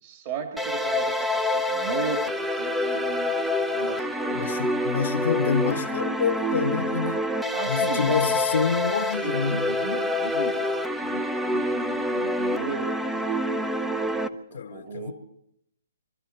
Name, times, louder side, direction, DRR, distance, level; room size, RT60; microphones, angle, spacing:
voice 1, 0.0-3.3 3.7-4.6 7.5-8.3 9.2-10.6 11.0-13.4 14.5-15.1, right 4 dB, 35° right, 2.2 m, -36 dB
sound 1, 0.6-14.3, left 1 dB, 5° right, 0.7 m, -27 dB
voice 2, 4.3-7.3 7.7-9.7 14.5-15.1, left 6 dB, 70° left, 1.2 m, -27 dB
24.5 x 13.0 x 4.5 m
hypercardioid pair, 150°, 0 cm